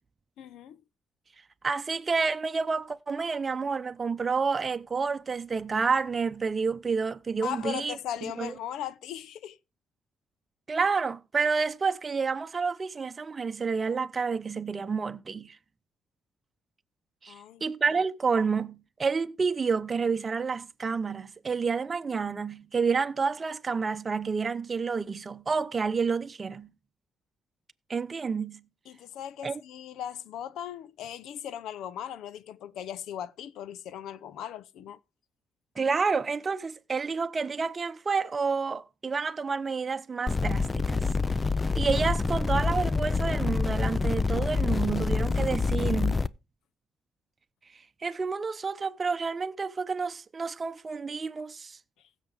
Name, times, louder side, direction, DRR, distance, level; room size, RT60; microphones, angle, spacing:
voice 1, 0.4-0.8 7.4-9.6 17.3-17.6 28.9-35.0, left 10 dB, 80° left, 0.6 m, -38 dB
voice 2, 1.6-8.0 8.2-8.5 10.7-15.6 17.2-17.3 17.6-26.7 27.9-28.6 29.4-29.6 35.8-41.1 41.8-46.3 48.0-51.8, right 5 dB, 35° right, 0.8 m, -29 dB
sound 1, 40.3-46.3, left 4 dB, 25° left, 0.5 m, -27 dB
16.0 x 7.4 x 3.5 m
cardioid pair, 90°, 0 cm